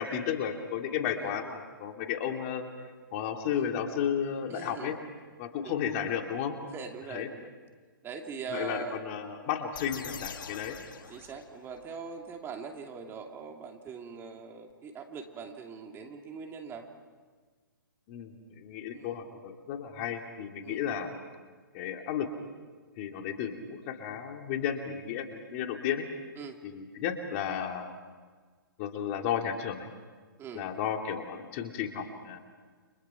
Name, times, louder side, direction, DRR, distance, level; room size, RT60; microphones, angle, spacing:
voice 1, 0.0-2.7 3.1-5.0 5.4-6.6 7.1-7.3 8.5-10.8 18.1-21.1 21.7-22.3 23.0-26.1 26.6-27.9 28.8-29.9 30.5-32.4, left 8 dB, 40° left, 4 dB, 2.9 m, -33 dB
voice 2, 4.5-4.9 5.6-5.9 6.7-7.5 8.0-9.0 11.1-16.9 18.9-19.1 20.6-20.8 26.4-26.6 30.4-30.7, right 6 dB, 20° right, 3 dB, 2.6 m, -42 dB
sound 1, 9.7-11.9, left 7 dB, 65° left, 1.8 m, -44 dB
30.0 x 27.5 x 5.9 m, 1.5 s
hypercardioid pair, 130°, 12 cm